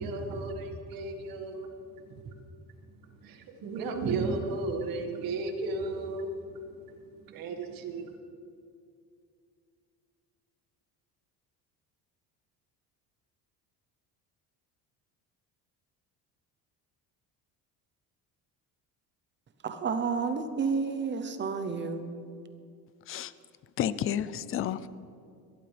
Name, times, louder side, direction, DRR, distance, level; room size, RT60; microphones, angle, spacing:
voice 1, 0.0-2.4 3.0-8.2, right 3 dB, 65° right, 1.9 m, -35 dB
voice 2, 19.6-22.2, right 5 dB, 30° right, 0.8 m, -30 dB
voice 3, 23.8-24.9, left 10 dB, 35° left, 0.5 m, -31 dB
22.5 x 12.5 x 3.4 m
cardioid pair, 145°, 37 cm